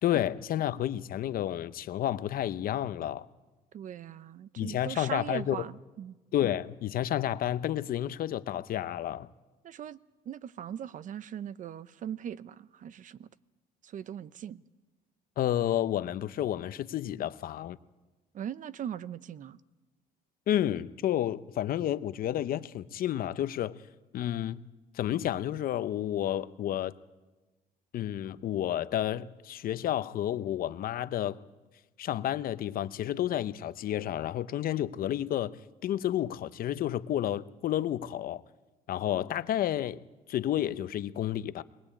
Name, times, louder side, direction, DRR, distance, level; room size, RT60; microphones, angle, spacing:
voice 1, 0.0-3.3 4.6-5.6 6.3-9.3 15.4-17.8 20.5-23.8 24.1-24.6 24.9-27.0 27.9-31.4 32.0-35.5 35.8-38.4 38.9-40.0 40.3-41.6, left 12 dB, 60° left, 0.7 m, -30 dB
voice 2, 3.7-6.2 9.6-10.0 10.3-13.3 13.8-14.6 18.3-19.6, right 9 dB, 50° right, 0.7 m, -40 dB
22.0 x 20.0 x 8.6 m
cardioid pair, 110°, 17 cm